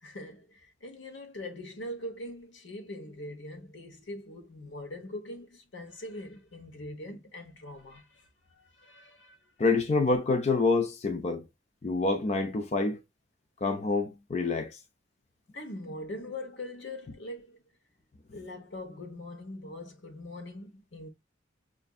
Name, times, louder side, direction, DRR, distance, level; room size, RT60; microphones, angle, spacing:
voice 1, 0.0-9.4 15.5-17.6 18.3-21.1, left 1 dB, 75° left, 1.0 m, -42 dB
voice 2, 9.6-11.4 11.8-13.0 13.6-14.8, left 3 dB, 35° left, 0.4 m, -27 dB
5.8 x 2.5 x 2.3 m
head